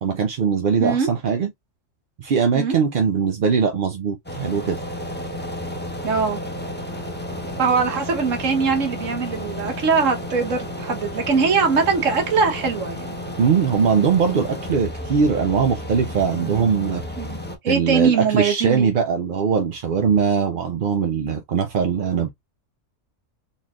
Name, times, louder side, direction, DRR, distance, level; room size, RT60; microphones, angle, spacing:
voice 1, 0.0-1.5 2.2-4.8 13.4-17.0 17.7-22.3, right 6 dB, 55° right, 0.6 m, -21 dB
sound 1, 4.2-17.5, left 1 dB, 10° left, 0.6 m, -32 dB
voice 2, 6.0-6.4 7.6-13.1 17.2-17.4 17.6-18.9, right 5 dB, 75° right, 1.5 m, -21 dB
4.1 x 3.2 x 2.3 m
omnidirectional pair, 1.3 m